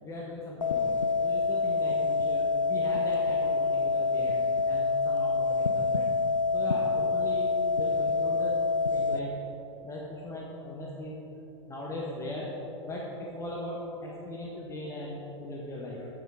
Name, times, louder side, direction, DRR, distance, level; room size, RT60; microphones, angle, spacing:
voice 1, 0.0-6.1 6.5-8.6 8.9-9.3 9.8-11.2 11.7-12.5 12.8-16.1, left 1 dB, 20° left, -4 dB, 1.5 m, -39 dB
sound 1, 0.6-9.2, left 4 dB, 85° left, 0.6 m, -27 dB
14.5 x 6.2 x 5.0 m, 2.9 s
figure-of-eight pair, 95°, 16 cm